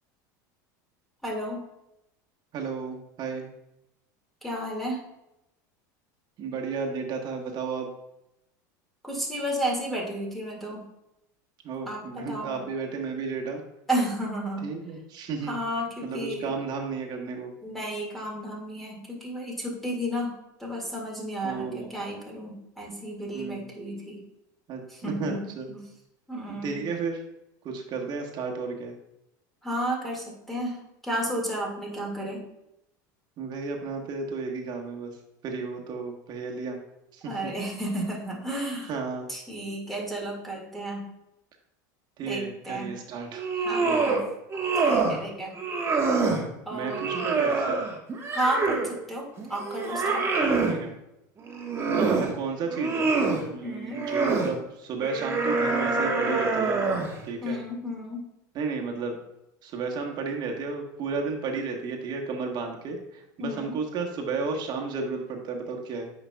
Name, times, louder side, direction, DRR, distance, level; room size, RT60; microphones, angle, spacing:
voice 1, 1.2-1.6 4.4-5.0 9.0-10.8 11.9-12.6 13.9-14.7 15.4-16.5 17.6-24.2 24.9-25.8 26.3-26.8 29.6-32.5 37.3-38.9 39.3-41.1 42.2-42.9 43.6-44.2 44.7-45.6 46.7-47.0 48.3-50.3 53.6-54.0 57.4-58.3 63.4-63.8, right 1 dB, ahead, -2 dB, 1.9 m, -32 dB
voice 2, 2.5-3.4 6.4-7.9 11.6-13.6 14.6-15.6 16.0-17.5 21.4-21.9 23.3-23.7 24.7-25.7 26.5-27.2 27.6-28.9 33.4-35.2 35.4-36.8 37.1-37.5 38.9-39.3 42.2-43.4 43.8-44.2 46.7-47.8 50.5-50.9 51.9-53.1 53.5-56.8 57.2-57.6 58.5-59.2 59.6-66.1, right 4 dB, 45° right, 2 dB, 1.3 m, -33 dB
sound 1, 43.3-44.2 44.5-45.2 45.6-46.4 46.9-48.9 49.4-50.8 51.4-52.3 52.7-53.4 53.9-54.5 55.0-57.2, right 4 dB, 25° right, 1.3 m, -26 dB
8.7 x 5.2 x 2.3 m, 0.86 s
supercardioid pair, 105°, 10 cm